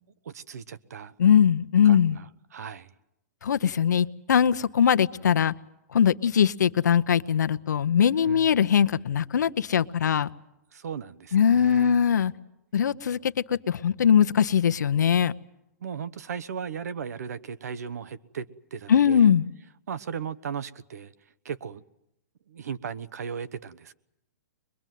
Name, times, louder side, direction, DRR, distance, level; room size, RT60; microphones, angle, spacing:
voice 1, 0.2-1.1 1.8-2.9 8.2-8.5 10.7-12.0 15.8-19.3 19.9-21.1 21.4-21.8 22.5-23.9, right 7 dB, 60° right, 15 dB, 1.0 m, -36 dB
voice 2, 1.2-2.2 3.4-5.5 5.9-10.3 11.3-12.3 12.7-15.3 18.9-19.5, left 8 dB, 80° left, 12 dB, 0.9 m, -21 dB
22.5 x 22.5 x 9.3 m, 0.85 s
hypercardioid pair, 180°, 9 cm